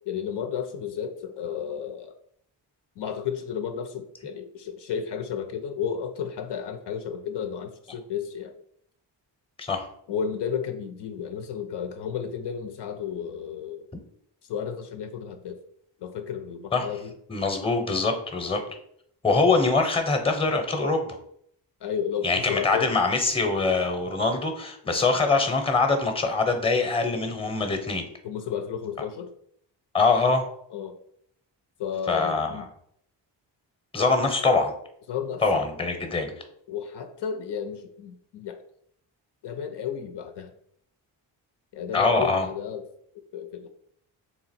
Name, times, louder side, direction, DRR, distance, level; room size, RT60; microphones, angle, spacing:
voice 1, 0.1-2.1 3.0-8.5 10.1-13.8 14.5-15.6 16.0-17.1 21.8-22.9 24.8-25.0 28.2-29.3 30.7-31.0 31.8-32.7 35.1-35.6 36.7-38.6 39.4-40.5 41.7-42.8 43.3-43.7, left 7 dB, 65° left, 6 dB, 0.6 m, -32 dB
voice 2, 17.3-18.6 19.2-21.2 22.2-28.0 29.9-30.5 32.1-32.6 33.9-34.7 35.4-36.3 41.9-42.5, left 3 dB, 10° left, 6 dB, 0.8 m, -23 dB
3.5 x 2.8 x 4.3 m, 0.68 s
cardioid pair, 70°, 45 cm